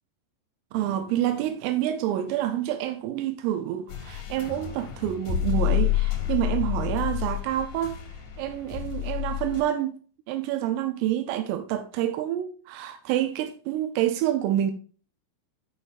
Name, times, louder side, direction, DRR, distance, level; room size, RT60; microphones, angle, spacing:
voice 1, 0.7-8.0 8.4-9.9 10.3-14.7, right 12 dB, 85° right, 3.4 m, -28 dB
sound 1, 3.9-9.6, left 13 dB, 50° left, 1.9 m, -29 dB
13.0 x 6.4 x 2.6 m
omnidirectional pair, 5.8 m